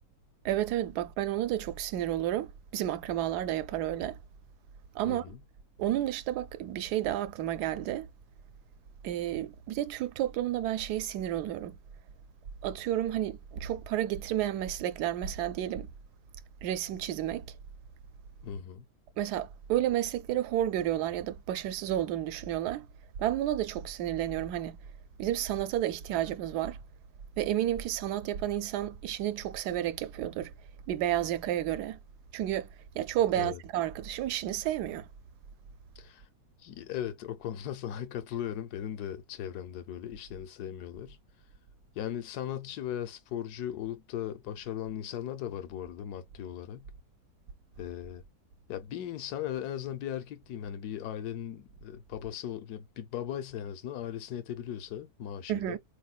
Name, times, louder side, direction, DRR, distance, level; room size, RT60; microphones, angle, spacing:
voice 1, 0.4-4.2 4.9-5.2 5.8-8.1 9.0-11.8 12.6-15.9 16.6-17.5 19.2-22.9 23.2-24.8 25.2-26.8 27.4-30.5 30.9-32.0 32.3-32.7 32.9-35.1 55.5-55.8, right 12 dB, 90° right, 1.1 m, -31 dB
voice 2, 5.0-5.4 18.4-18.9 33.3-33.6 36.0-36.3 36.6-41.2 41.9-46.9 47.8-48.2 48.7-55.8, left 10 dB, 80° left, 1.2 m, -38 dB
4.2 x 3.0 x 2.2 m
omnidirectional pair, 1.7 m